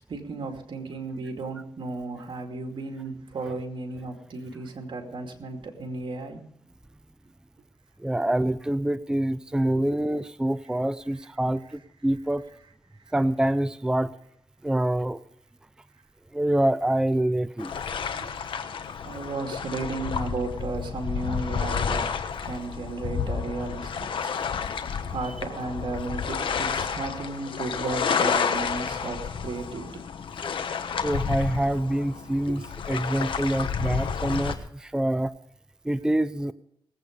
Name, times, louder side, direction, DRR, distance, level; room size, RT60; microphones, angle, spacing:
voice 1, 0.1-6.4 9.8-10.0 13.1-13.2 18.1-18.3 19.0-22.1 22.4-24.4 25.1-30.0 30.8-30.9 32.5-32.6, right 3 dB, 65° right, 4 dB, 2.5 m, -34 dB
voice 2, 8.0-12.4 13.1-14.1 14.6-15.2 16.3-17.7 30.4-30.5 31.0-35.3 35.8-36.5, right 1 dB, 10° right, 13 dB, 0.5 m, -26 dB
sound 1, 17.6-34.6, left 6 dB, 70° left, 1.2 m, -30 dB
19.5 x 8.4 x 5.2 m, 0.72 s
cardioid pair, 75°, 9 cm